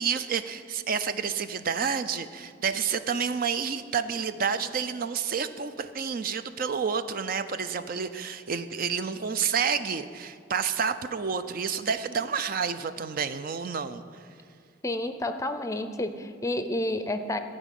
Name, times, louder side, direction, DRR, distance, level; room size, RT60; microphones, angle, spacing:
voice 1, 0.0-14.0, right 6 dB, 50° right, 11 dB, 0.5 m, -29 dB
voice 2, 14.8-17.4, left 1 dB, 15° left, 9 dB, 0.5 m, -30 dB
15.0 x 5.1 x 9.1 m, 2.2 s
head